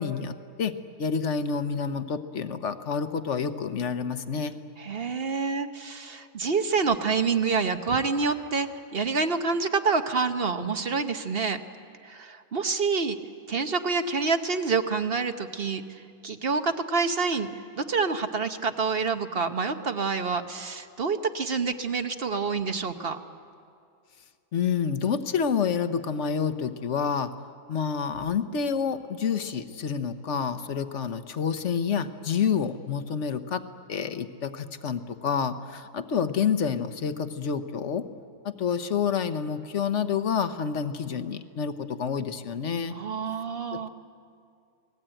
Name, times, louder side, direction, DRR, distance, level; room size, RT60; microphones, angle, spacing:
voice 1, 0.0-4.5 24.5-27.3 27.7-38.1 38.4-43.0 43.7-43.9, left 6 dB, 55° left, 10 dB, 1.2 m, -28 dB
voice 2, 4.8-11.6 12.0-13.2 13.5-17.5 17.8-23.2 42.9-43.9, right 4 dB, 45° right, 8 dB, 1.0 m, -27 dB
28.0 x 19.5 x 9.0 m, 2.3 s
omnidirectional pair, 1.7 m